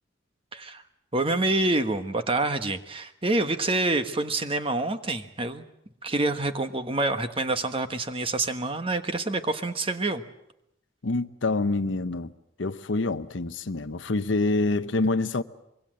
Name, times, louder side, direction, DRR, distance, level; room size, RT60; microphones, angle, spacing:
voice 1, 0.5-0.8 1.1-5.6 6.0-10.2, right 2 dB, 25° right, 1.3 m, -27 dB
voice 2, 11.0-12.3 12.6-15.4, left 2 dB, 70° left, 0.8 m, -26 dB
25.0 x 22.5 x 7.6 m
head